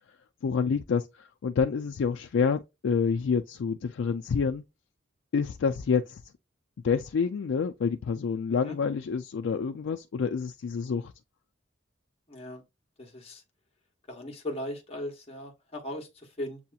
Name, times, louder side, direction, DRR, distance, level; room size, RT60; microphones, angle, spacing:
voice 1, 0.4-4.6 5.3-6.2 6.8-11.1, left 5 dB, 80° left, 0.4 m, -28 dB
voice 2, 12.3-12.6 13.0-13.4 14.1-16.6, left 1 dB, 30° left, 1.1 m, -38 dB
7.5 x 2.8 x 2.3 m
head